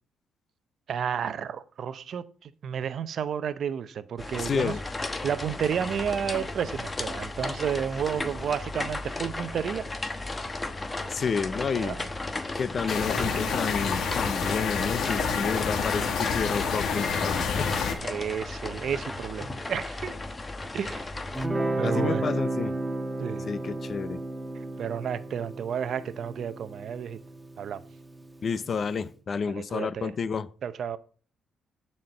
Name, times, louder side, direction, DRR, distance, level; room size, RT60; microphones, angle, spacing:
voice 1, 0.9-4.7 5.2-10.2 11.7-12.1 15.2-15.8 18.0-20.1 20.7-21.1 21.8-22.3 23.2-23.5 24.8-27.2 27.6-27.8 29.5-30.1 30.6-31.0, right 8 dB, 60° right, 0.6 m, -32 dB
sound 1, 4.2-21.5, left 2 dB, 20° left, 1.0 m, -35 dB
voice 2, 4.4-4.8 11.1-12.0 12.5-17.7 21.8-22.7 23.5-24.2 28.4-30.5, left 5 dB, 45° left, 0.6 m, -30 dB
sound 2, 12.9-17.9, left 5 dB, 65° left, 1.5 m, -28 dB
Guitar, 21.4-28.5, right 2 dB, 5° right, 1.4 m, -32 dB
11.0 x 4.4 x 5.4 m
cardioid pair, 90°, 0 cm